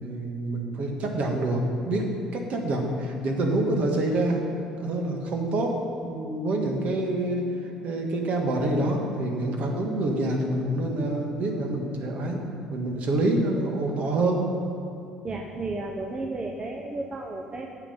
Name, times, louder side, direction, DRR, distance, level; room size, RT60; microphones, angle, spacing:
voice 1, 0.0-4.4 4.8-12.4 12.7-14.7, right 1 dB, 55° right, 2 dB, 1.7 m, -27 dB
voice 2, 15.2-17.7, right 2 dB, 35° right, 1 dB, 0.9 m, -33 dB
8.9 x 7.4 x 5.7 m, 2.7 s
hypercardioid pair, 60°, 3 cm